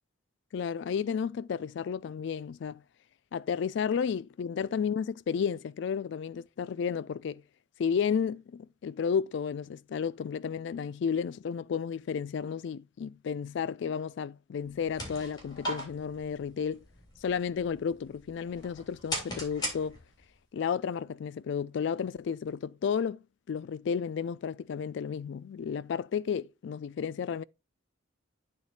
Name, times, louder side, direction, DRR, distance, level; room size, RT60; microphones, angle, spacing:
voice 1, 0.5-2.8 3.3-7.4 7.8-16.8 17.2-20.0 20.5-27.4, left 7 dB, 60° left, 0.3 m, -32 dB
sound 1, 14.6-20.4, equal, 20° left, 2.9 m, -40 dB
8.9 x 4.0 x 4.2 m
head